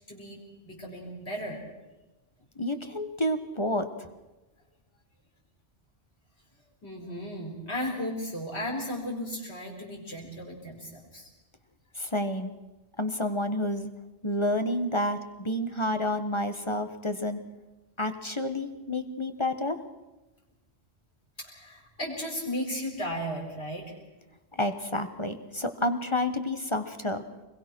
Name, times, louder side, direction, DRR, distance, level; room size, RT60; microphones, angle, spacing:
voice 1, 0.1-0.4 0.6-1.6 6.8-11.3 21.4-24.0, equal, 70° left, -2 dB, 5.2 m, -35 dB
voice 2, 2.5-3.9 11.9-12.5 13.0-13.9 14.2-17.4 18.0-19.8 24.5-27.2, left 1 dB, 25° left, 8 dB, 1.4 m, -29 dB
24.5 x 22.0 x 6.2 m, 1.1 s
omnidirectional pair, 1.2 m